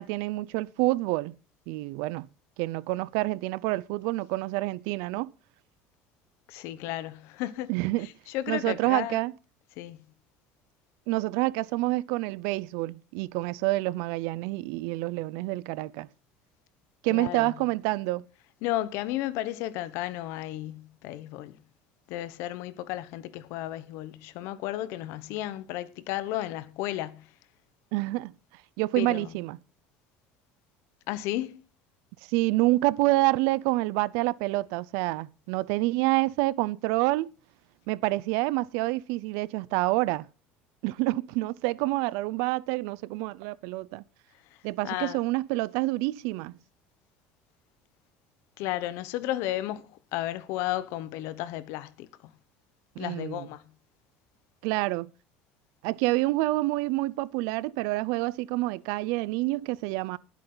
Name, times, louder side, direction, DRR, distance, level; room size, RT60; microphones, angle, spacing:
voice 1, 0.0-1.3 1.7-2.3 2.6-5.3 7.7-8.1 8.5-9.3 11.1-16.1 17.0-18.3 27.9-28.3 28.8-29.6 32.3-37.3 37.9-40.3 40.8-44.0 44.6-46.5 53.0-53.5 54.6-55.1 55.8-60.2, right 20 dB, 75° right, 0.6 m, -27 dB
voice 2, 6.5-7.7 8.3-9.2 9.8-10.0 17.1-17.5 18.6-21.6 22.1-27.3 29.0-29.3 31.1-31.6 44.8-45.2 48.6-52.3 53.0-53.6, left 14 dB, 70° left, 1.1 m, -33 dB
19.5 x 8.3 x 4.0 m
cardioid pair, 140°, 5 cm